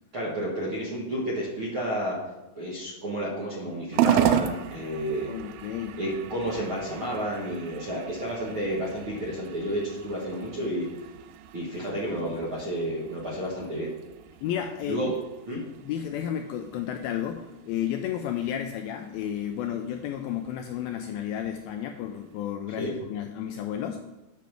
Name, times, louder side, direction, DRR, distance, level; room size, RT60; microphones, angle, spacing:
voice 1, 0.1-2.2 2.6-5.3 6.0-10.9 11.5-13.9 14.9-15.1 15.5-15.6 22.8-22.9, equal, 50° right, -5 dB, 1.7 m, -31 dB
sound 1, 3.9-22.5, right 11 dB, 85° right, 2.2 m, -35 dB
voice 2, 5.3-6.0 14.4-15.1 15.6-24.0, left 10 dB, 85° left, 5 dB, 2.1 m, -32 dB
8.7 x 5.9 x 6.2 m, 1.0 s
omnidirectional pair, 4.7 m